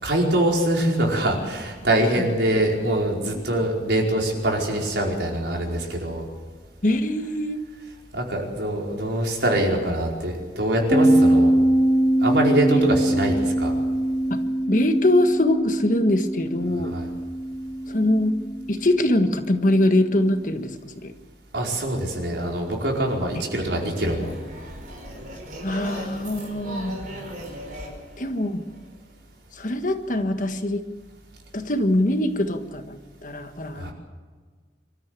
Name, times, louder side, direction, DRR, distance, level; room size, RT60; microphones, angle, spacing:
voice 1, 0.0-6.2 8.1-11.5 12.2-13.7 16.8-17.1 21.5-24.3 33.8-33.9, right 1 dB, 70° right, -1 dB, 4.9 m, -24 dB
voice 2, 6.8-7.6 12.7-12.8 14.3-14.4 14.7-16.9 17.9-18.4 18.7-21.1 23.3-23.4 24.0-24.1 25.6-27.1 28.2-28.6 29.5-30.8 31.5-33.9, left 1 dB, 45° left, 7 dB, 1.5 m, -23 dB
sound 1, 10.9-20.4, right 1 dB, 10° left, 2.9 m, -23 dB
sound 2, 23.9-29.1, equal, 50° right, 5.2 m, -38 dB
25.0 x 13.5 x 8.4 m, 1.5 s
head